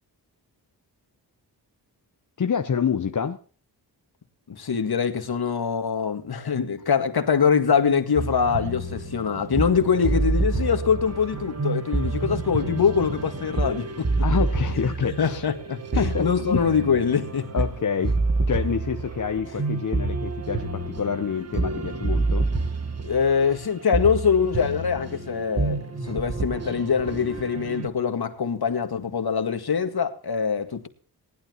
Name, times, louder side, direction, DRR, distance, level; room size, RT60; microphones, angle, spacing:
voice 1, 2.4-3.4 14.2-15.4 16.0-16.6 17.5-22.5, left 7 dB, 45° left, 0.9 m, -27 dB
voice 2, 4.5-14.3 14.7-17.7 19.4-19.6 23.0-30.9, left 6 dB, 65° left, 2.0 m, -24 dB
sound 1, 8.2-27.9, right 3 dB, 35° right, 1.4 m, -28 dB
19.0 x 12.0 x 3.1 m
cardioid pair, 80°, 41 cm